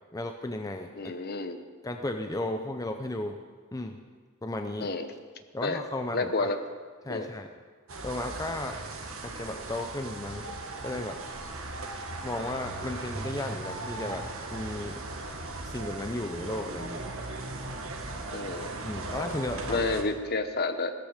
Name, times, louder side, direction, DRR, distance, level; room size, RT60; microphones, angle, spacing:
voice 1, 0.1-1.1 1.8-3.4 3.7-4.0 4.4-4.9 5.5-6.5 7.0-7.5 8.0-8.8 9.2-10.5 10.8-11.2 12.2-14.3 14.5-15.0 15.6-17.0 18.8-19.9, left 1 dB, 15° left, 5 dB, 0.6 m, -34 dB
voice 2, 0.9-1.6 4.8-5.1 5.6-5.8 6.1-6.6 7.1-7.3 18.3-18.7 19.7-20.9, left 3 dB, 45° left, 9 dB, 1.0 m, -30 dB
sound 1, 7.9-20.0, right 2 dB, 70° right, 1.7 m, -38 dB
16.0 x 14.0 x 5.0 m, 1.5 s
head